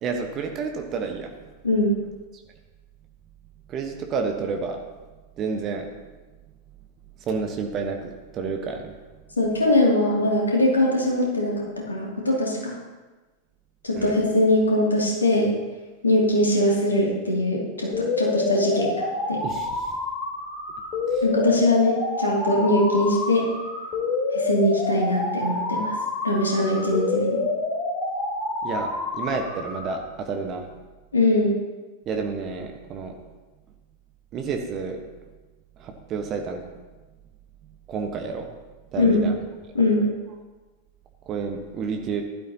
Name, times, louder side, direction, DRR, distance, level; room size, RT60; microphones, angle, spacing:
voice 1, 0.0-1.3 3.7-4.8 5.4-5.9 7.2-8.9 14.0-14.1 19.4-20.0 21.1-21.2 28.6-30.7 32.1-33.2 34.3-35.0 35.8-36.6 37.9-38.5 38.9-39.4 41.3-42.2, right 5 dB, 30° right, 4 dB, 1.2 m, -30 dB
voice 2, 9.4-12.8 13.8-15.5 16.0-19.4 21.2-23.4 24.3-26.0 26.2-27.4 31.1-31.6 39.0-39.2 39.7-40.0, left 1 dB, 75° left, -2 dB, 2.5 m, -21 dB
sound 1, 17.9-29.9, left 2 dB, 35° left, 3.6 m, -28 dB
15.5 x 12.0 x 2.9 m, 1.2 s
figure-of-eight pair, 90°, 0 cm